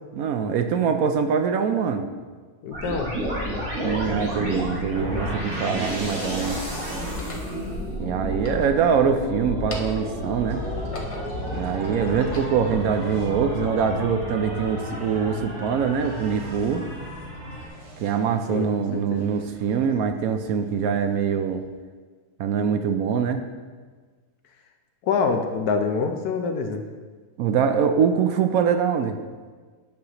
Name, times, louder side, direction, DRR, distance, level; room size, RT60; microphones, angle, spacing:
voice 1, 0.1-2.1 3.8-6.6 8.0-10.6 11.5-16.8 18.0-21.6 22.4-23.4 27.4-29.2, right 7 dB, 70° right, 7 dB, 0.9 m, -23 dB
voice 2, 2.6-3.1 18.5-18.7 18.9-19.3 25.0-26.8, left 5 dB, 75° left, 5 dB, 1.2 m, -25 dB
sound 1, 2.7-17.7, equal, 35° right, 2.3 m, -31 dB
sound 2, 4.5-4.6 5.4-6.3 7.0-7.5 8.3-9.2 9.5-10.1 10.6-11.5 12.0-12.8, left 1 dB, 35° left, 0.5 m, -40 dB
sound 3, 10.5-21.6, right 1 dB, 85° right, 2.0 m, -43 dB
10.5 x 6.4 x 2.9 m, 1.5 s
omnidirectional pair, 1.7 m